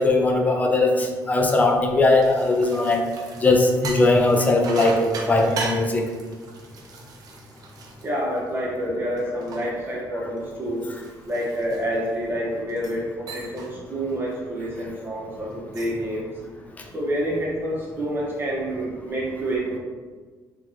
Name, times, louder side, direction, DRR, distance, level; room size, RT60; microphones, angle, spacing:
voice 1, 0.0-3.1 3.4-6.1, left 2 dB, 20° left, 3 dB, 0.5 m, -19 dB
sound 1, 1.9-8.7 9.2-12.2 12.7-13.0 13.3-13.7 14.1-14.4 15.5-16.1, right 4 dB, 55° right, 0.6 m, -38 dB
voice 2, 8.0-10.9 11.2-16.3 16.9-19.8, equal, 30° right, -4 dB, 1.1 m, -28 dB
3.1 x 3.0 x 3.7 m, 1.4 s
cardioid pair, 120°, 8 cm